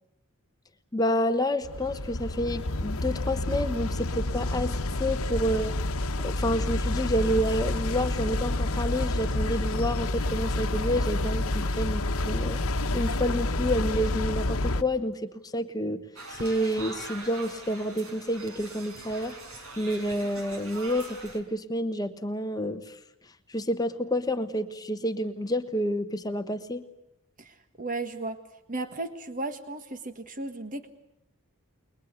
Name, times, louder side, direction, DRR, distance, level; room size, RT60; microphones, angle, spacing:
voice 1, 0.9-5.7 6.2-12.6 12.9-16.0 16.3-19.4 19.8-23.0 23.5-26.8, equal, 15° left, 9 dB, 1.1 m, -29 dB
sound 1, 1.6-14.8, left 2 dB, 75° left, 1.1 m, -29 dB
sound 2, 16.2-21.4, right 2 dB, 70° right, 4.8 m, -42 dB
voice 2, 27.4-28.4 28.7-30.9, right 2 dB, 40° right, 9 dB, 1.6 m, -35 dB
29.5 x 22.0 x 8.1 m, 0.82 s
head